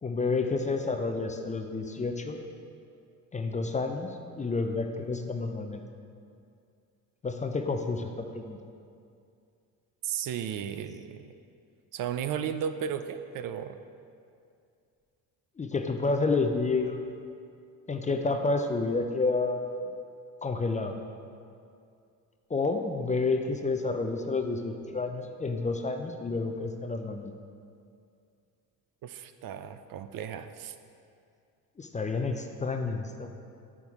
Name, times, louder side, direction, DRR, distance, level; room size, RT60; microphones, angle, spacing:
voice 1, 0.0-2.4 3.3-5.8 7.2-8.6 15.6-17.1 17.9-19.9 20.4-21.0 22.5-27.3 31.8-33.3, left 3 dB, 20° left, 5 dB, 0.4 m, -30 dB
voice 2, 10.0-11.3 11.9-13.8 29.0-30.8, right 8 dB, 60° right, 10 dB, 0.5 m, -34 dB
7.9 x 6.1 x 3.5 m, 2.4 s
cardioid pair, 95°, 38 cm